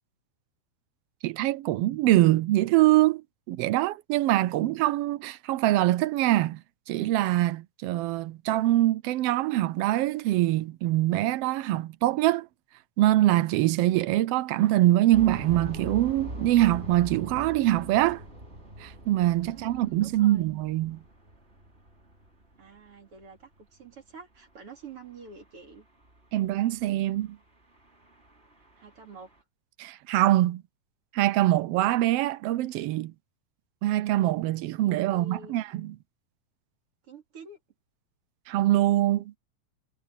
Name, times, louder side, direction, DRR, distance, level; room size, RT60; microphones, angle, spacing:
voice 1, 1.2-12.5 13.0-18.2 18.8-21.0 26.3-27.4 29.8-30.6 31.1-33.1 33.8-35.9 38.5-39.3, right 15 dB, 80° right, 1.4 m, -24 dB
sound 1, 15.1-22.9 23.2-23.3 23.8-24.0 25.4-25.5 25.7-25.8 26.1-26.2 26.5-26.6 26.9-27.3 27.8-29.4, right 1 dB, 20° right, 4.1 m, -42 dB
voice 2, 19.5-20.5 22.6-25.9 28.6-29.3 34.9-35.6 37.0-37.6, right 4 dB, 50° right, 3.5 m, -48 dB
omnidirectional pair, 3.3 m